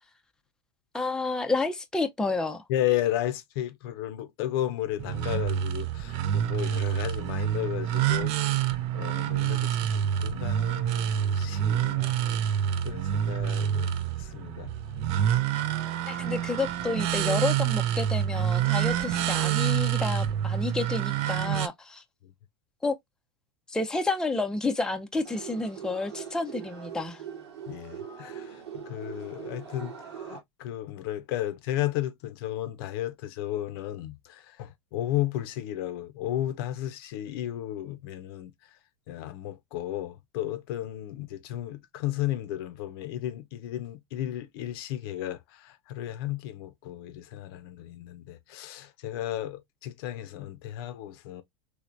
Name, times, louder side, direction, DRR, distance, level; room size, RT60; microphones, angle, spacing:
voice 1, 0.9-2.6 16.0-22.0 22.8-23.0 23.7-27.2, left 3 dB, 5° left, 0.5 m, -30 dB
voice 2, 2.7-8.7 8.9-12.4 12.8-13.9 14.2-14.7 27.7-30.0 30.3-38.5 39.1-51.4, left 13 dB, 60° left, 0.6 m, -34 dB
sound 1, 5.0-21.7, right 10 dB, 45° right, 0.5 m, -27 dB
sound 2, 25.2-30.4, right 8 dB, 80° right, 1.4 m, -41 dB
3.2 x 3.0 x 2.5 m
hypercardioid pair, 95°, 14 cm